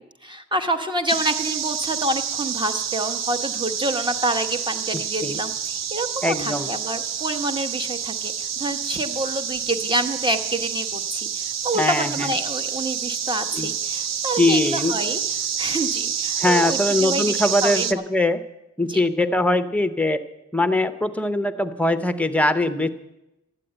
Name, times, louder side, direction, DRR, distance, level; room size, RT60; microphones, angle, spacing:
voice 1, 0.2-17.9 18.9-19.0, right 1 dB, 15° right, 8 dB, 1.0 m, -27 dB
sound 1, 1.1-17.9, right 8 dB, 65° right, 0.6 m, -28 dB
voice 2, 4.9-5.4 6.2-6.7 11.7-12.3 13.5-13.7 14.3-14.9 16.4-18.4 18.8-20.2 20.5-22.9, left 1 dB, 5° left, 10 dB, 0.7 m, -22 dB
12.5 x 9.2 x 8.9 m, 0.93 s
wide cardioid pair, 150°, 29 cm